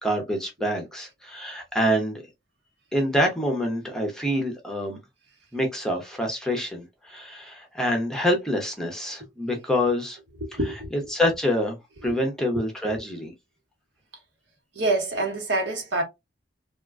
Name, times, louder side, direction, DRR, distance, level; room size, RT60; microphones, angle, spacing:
voice 1, 0.0-2.2 2.9-5.0 5.5-10.2 11.1-11.8 12.0-13.3, equal, 5° left, 0.7 m, -26 dB
voice 2, 10.4-10.9 12.8-13.0 14.7-16.0, right 2 dB, 80° right, 1.2 m, -26 dB
3.5 x 2.4 x 2.4 m
head